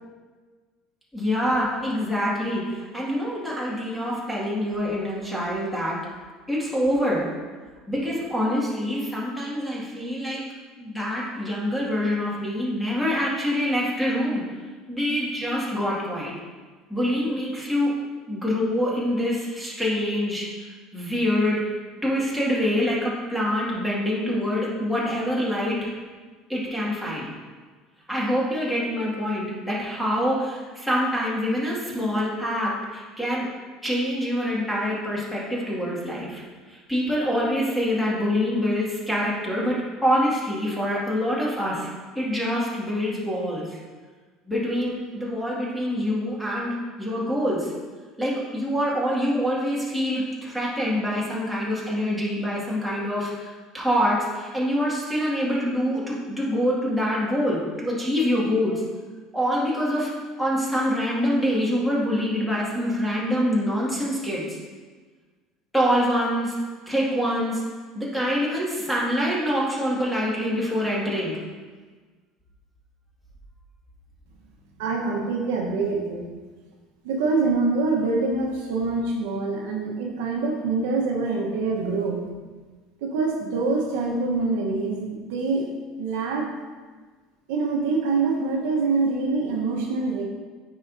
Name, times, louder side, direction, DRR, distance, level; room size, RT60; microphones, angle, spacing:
voice 1, 1.1-6.0 6.5-7.3 7.9-10.4 10.8-14.4 14.9-16.3 16.9-17.9 18.3-21.6 22.0-25.9 26.5-27.3 28.1-33.5 33.8-36.4 36.7-41.9 42.1-43.8 44.5-47.7 48.2-58.8 59.3-60.1 60.4-64.6 65.7-66.6 66.9-67.6 68.0-71.4, equal, ahead, -6 dB, 2.0 m, -25 dB
voice 2, 74.8-76.2 77.0-82.2 83.0-85.6 86.0-86.5 87.5-90.2, right 3 dB, 85° right, 0 dB, 1.1 m, -25 dB
9.0 x 4.9 x 2.7 m, 1.4 s
supercardioid pair, 110°, 0 cm